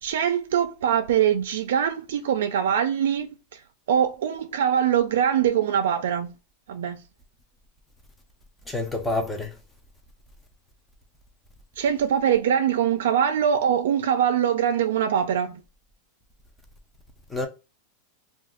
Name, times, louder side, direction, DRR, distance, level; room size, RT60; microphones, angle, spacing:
voice 1, 0.0-3.6 3.9-6.3 6.7-7.0 11.8-15.6, right 9 dB, 85° right, 0.4 m, -23 dB
voice 2, 8.7-9.6 17.3-17.5, left 2 dB, 5° left, 0.5 m, -28 dB
2.5 x 2.4 x 3.7 m
supercardioid pair, 165°, 0 cm